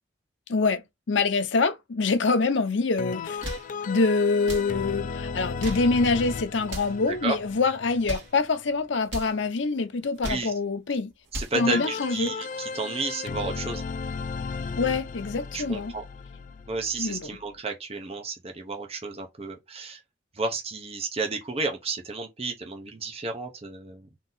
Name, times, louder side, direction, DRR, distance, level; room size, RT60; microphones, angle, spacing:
voice 1, 0.5-0.8 1.1-3.4 3.9-11.1 11.5-12.3 14.8-15.9 17.0-17.3, left 4 dB, 70° left, 0.7 m, -25 dB
sound 1, 3.0-8.8 11.6-17.5, left 4 dB, 45° left, 0.3 m, -35 dB
sound 2, 3.2-3.7 4.4-4.7 5.4-5.9 6.6-7.0 7.9-8.4 9.0-9.4 10.0-10.5 11.1-11.6, equal, 60° right, 1.8 m, -36 dB
voice 2, 11.3-13.8 15.5-16.0 16.7-20.0 20.3-24.1, right 3 dB, 30° right, 0.7 m, -32 dB
3.8 x 2.7 x 4.1 m
head